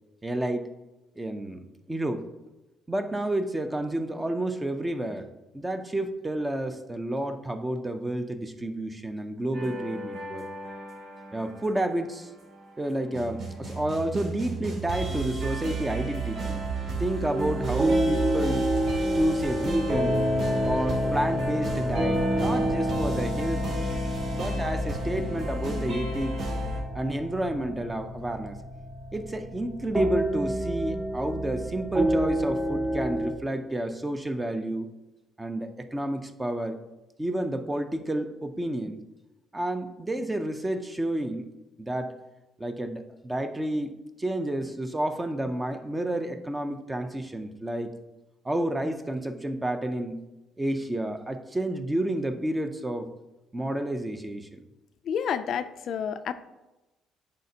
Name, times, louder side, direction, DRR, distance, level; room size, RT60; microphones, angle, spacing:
voice 1, 0.2-0.7 1.2-1.6 1.9-2.3 2.9-5.3 5.5-10.5 11.3-12.3 12.8-16.6 17.0-18.7 19.1-20.2 20.6-23.6 24.3-26.3 26.9-28.6 29.1-34.9 35.4-36.8 37.2-39.0 39.5-41.5 41.8-42.2 42.6-43.9 44.2-47.9 48.4-50.2 50.6-53.1 53.5-54.6, right 1 dB, 10° right, 8 dB, 0.4 m, -30 dB
sound 1, 9.5-26.8, right 2 dB, 60° right, 2.4 m, -33 dB
sound 2, 17.3-33.3, equal, 30° right, 1.5 m, -29 dB
voice 2, 55.1-56.3, left 8 dB, 55° left, 11 dB, 0.3 m, -29 dB
10.5 x 4.2 x 2.7 m, 1.0 s
cardioid pair, 150°, 0 cm